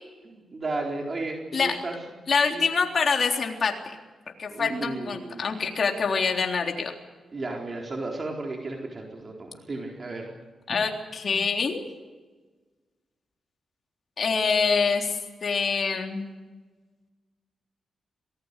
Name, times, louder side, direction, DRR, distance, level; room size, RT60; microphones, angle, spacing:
voice 1, 0.2-1.9 2.5-2.7 4.5-5.4 7.3-10.4, right 2 dB, 40° right, 0 dB, 4.3 m, -34 dB
voice 2, 2.3-3.8 4.4-6.9 10.7-11.8 14.2-16.3, left 5 dB, 50° left, 2 dB, 3.6 m, -25 dB
26.0 x 19.0 x 8.3 m, 1.3 s
cardioid pair, 95°, 0 cm